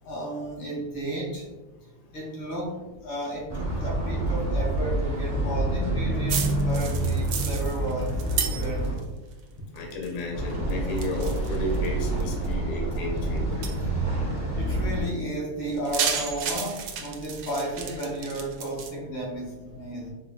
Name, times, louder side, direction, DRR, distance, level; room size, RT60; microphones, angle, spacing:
voice 1, 0.0-1.5 2.1-8.1 8.6-9.0 14.5-20.1, right 1 dB, 90° left, -2 dB, 2.0 m, -33 dB
sound 1, 3.5-8.9 10.3-15.0, right 1 dB, 15° right, 0.7 m, -27 dB
sound 2, 6.3-9.0 9.3-10.2 10.5-12.5 13.0-13.1 13.6-13.8 15.7-18.9, right 7 dB, 80° right, 1.3 m, -32 dB
voice 2, 9.7-13.7, left 1 dB, 60° left, 0 dB, 0.9 m, -32 dB
4.8 x 2.6 x 2.2 m, 1.1 s
omnidirectional pair, 2.1 m